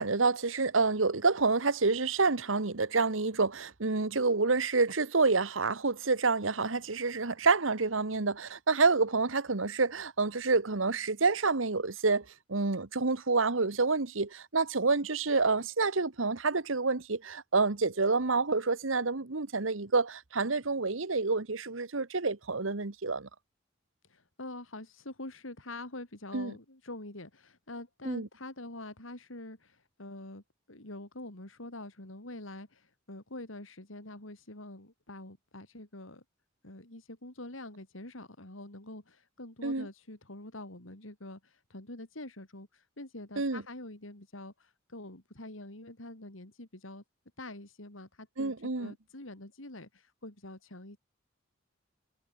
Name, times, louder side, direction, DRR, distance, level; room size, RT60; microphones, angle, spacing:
voice 1, 0.0-23.3 26.3-26.5 28.0-28.3 39.6-39.9 43.4-43.6 48.4-48.9, right 4 dB, 75° right, 1.4 m, -28 dB
voice 2, 24.1-36.2 36.6-47.0 47.4-51.0, left 2 dB, 80° left, 4.2 m, -45 dB
head